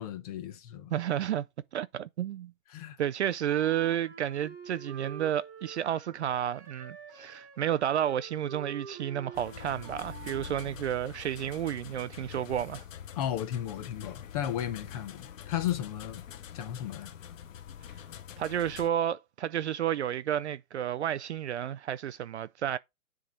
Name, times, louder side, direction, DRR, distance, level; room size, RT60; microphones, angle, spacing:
voice 1, 0.0-0.9 2.7-3.0 13.2-16.2 16.5-17.1, left 11 dB, 25° left, 0.9 m, -34 dB
voice 2, 0.9-1.4 1.7-2.5 3.0-12.8 18.4-22.8, right 10 dB, 55° right, 0.5 m, -31 dB
Wind instrument woodwind instrument, 3.5-11.0, right 6 dB, 20° right, 1.6 m, -47 dB
sound 1, 9.3-18.9, left 9 dB, 60° left, 1.0 m, -45 dB
10.0 x 3.6 x 4.0 m
hypercardioid pair, 155°, 43 cm